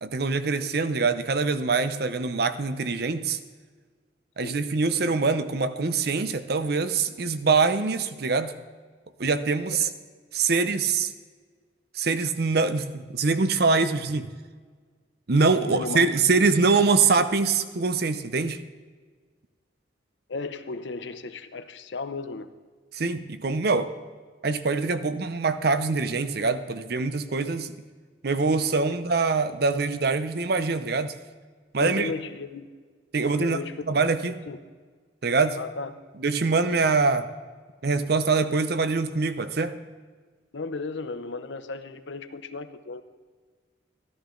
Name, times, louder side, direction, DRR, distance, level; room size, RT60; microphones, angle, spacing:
voice 1, 0.0-3.4 4.4-8.5 9.2-9.9 10.3-11.1 11.9-14.3 15.3-18.6 22.9-23.9 24.4-27.8 28.2-31.2 31.7-32.1 33.1-33.6 33.9-34.4 35.2-35.6 36.2-37.3 37.8-39.8, right 4 dB, 55° right, 11 dB, 0.6 m, -24 dB
voice 2, 15.6-16.1 20.3-22.5 31.8-32.7 33.4-33.9 34.5-34.6 35.5-35.9 36.6-36.8 40.5-43.0, left 4 dB, 75° left, 11 dB, 0.7 m, -34 dB
13.5 x 13.5 x 3.8 m, 1.5 s
head